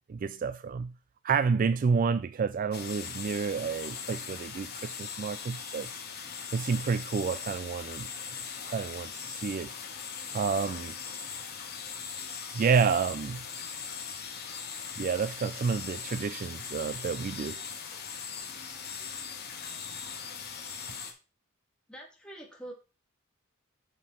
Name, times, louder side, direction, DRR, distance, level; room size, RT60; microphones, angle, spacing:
voice 1, 0.1-0.9 1.2-5.9 6.5-8.1 8.7-9.7 10.3-11.0 12.5-13.4 15.0-17.6, right 5 dB, 40° right, 0.3 m, -29 dB
sound 1, 2.7-21.1, left 6 dB, 50° left, 2.0 m, -40 dB
voice 2, 21.9-22.7, right 1 dB, 5° left, 2.7 m, -44 dB
8.9 x 6.0 x 4.3 m
head